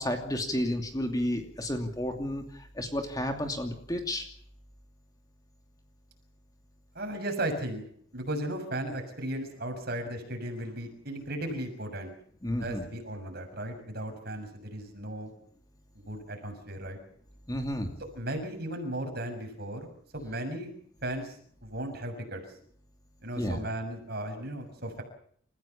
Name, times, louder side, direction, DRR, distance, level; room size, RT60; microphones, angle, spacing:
voice 1, 0.0-4.3 12.4-12.9 17.5-17.9 23.4-23.6, left 1 dB, 15° left, 4 dB, 2.7 m, -31 dB
voice 2, 6.9-7.8 8.1-12.1 12.6-15.3 15.9-17.0 18.0-19.9 20.1-20.7 21.0-22.4 23.2-25.0, right 1 dB, 50° right, 5 dB, 6.6 m, -36 dB
29.5 x 15.5 x 7.2 m, 0.62 s
head